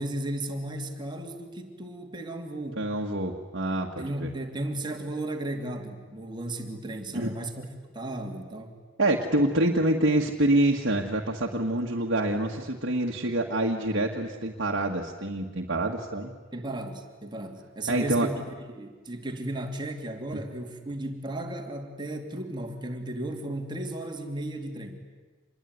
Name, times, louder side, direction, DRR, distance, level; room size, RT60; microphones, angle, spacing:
voice 1, 0.0-2.9 4.0-7.6 7.9-8.8 16.5-18.3 18.6-25.0, right 1 dB, 20° right, 4 dB, 2.7 m, -35 dB
voice 2, 2.8-4.3 7.1-7.3 9.0-16.3 17.9-18.3, right 1 dB, 55° right, 0 dB, 1.8 m, -26 dB
27.0 x 21.5 x 9.5 m, 1.4 s
head